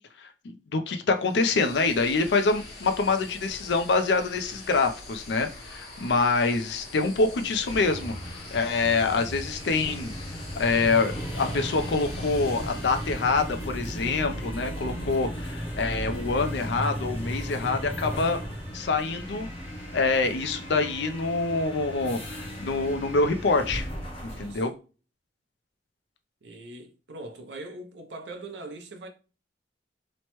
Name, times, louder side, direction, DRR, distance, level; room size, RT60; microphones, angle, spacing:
voice 1, 0.2-8.1 8.5-10.1 10.6-18.4 18.7-19.5 19.9-23.9 24.2-24.7, left 3 dB, 75° left, 0.5 m, -26 dB
sound 1, 1.2-13.9, left 2 dB, 55° left, 1.0 m, -44 dB
sound 2, 7.5-24.7, equal, 35° left, 0.8 m, -36 dB
sound 3, 11.0-23.7, equal, 10° right, 0.4 m, -46 dB
voice 2, 24.2-24.7 26.4-29.1, right 2 dB, 75° right, 0.6 m, -41 dB
3.0 x 2.1 x 2.9 m
head